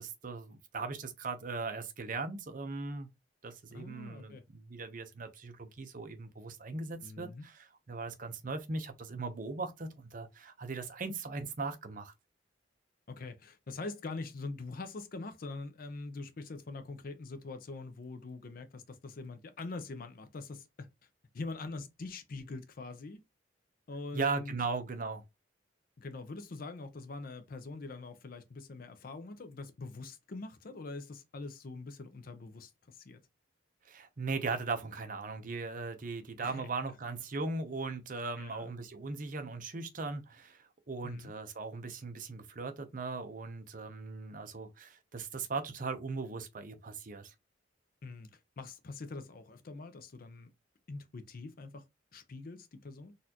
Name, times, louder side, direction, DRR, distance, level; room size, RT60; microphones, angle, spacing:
voice 1, 0.0-3.1 3.4-12.1 24.1-25.2 33.9-47.3, right 4 dB, 45° right, 0.6 m, -38 dB
voice 2, 3.7-4.4 7.0-7.5 13.1-20.9 21.3-23.2 23.9-24.5 26.0-33.2 36.4-36.7 38.4-38.7 41.0-41.3 48.0-50.5 50.9-51.8 52.1-53.1, left 3 dB, 50° left, 0.5 m, -44 dB
4.1 x 2.4 x 2.8 m
head